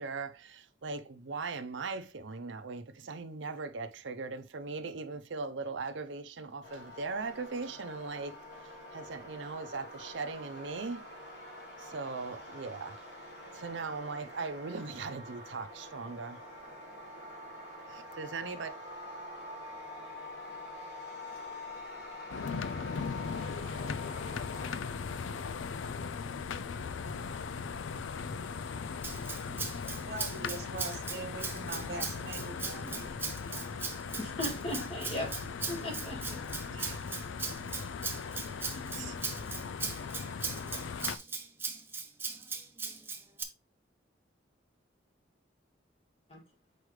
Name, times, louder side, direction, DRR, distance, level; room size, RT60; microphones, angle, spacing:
voice 1, 0.0-11.1 11.8-13.0 13.5-16.4 17.9-18.7 35.8-35.9 36.7-37.0 38.9-39.2, right 4 dB, 80° right, 0.7 m, -39 dB
sound 1, 6.6-24.8, left 1 dB, 55° left, 2.3 m, -46 dB
sound 2, 22.3-41.2, left 5 dB, 90° left, 0.4 m, -38 dB
Rattle (instrument), 29.0-43.4, right 5 dB, 10° right, 0.6 m, -39 dB
voice 2, 30.1-33.2, right 3 dB, 55° right, 1.0 m, -42 dB
voice 3, 34.2-35.3 35.7-36.4 46.3-46.4, left 1 dB, 30° left, 1.8 m, -37 dB
6.4 x 4.7 x 3.2 m
head